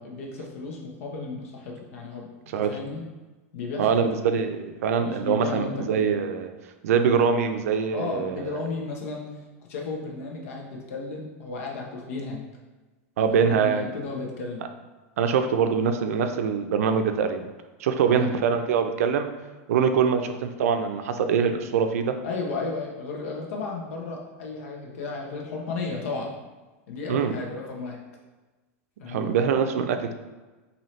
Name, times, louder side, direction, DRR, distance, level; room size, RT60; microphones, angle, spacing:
voice 1, 0.0-2.3 2.6-3.0 3.5-4.1 5.0-6.0 7.9-9.4 9.7-12.5 13.3-14.6 18.1-18.3 20.1-20.3 22.2-26.3 26.9-28.0 29.0-29.3, left 3 dB, 70° left, -1 dB, 0.8 m, -34 dB
voice 2, 3.8-6.5 6.8-8.5 13.2-13.9 15.2-17.5 17.8-19.3 19.7-22.2 27.1-27.3 29.1-30.1, right 6 dB, 90° right, 7 dB, 0.4 m, -23 dB
4.1 x 2.7 x 3.1 m, 1.2 s
supercardioid pair, 165°, 8 cm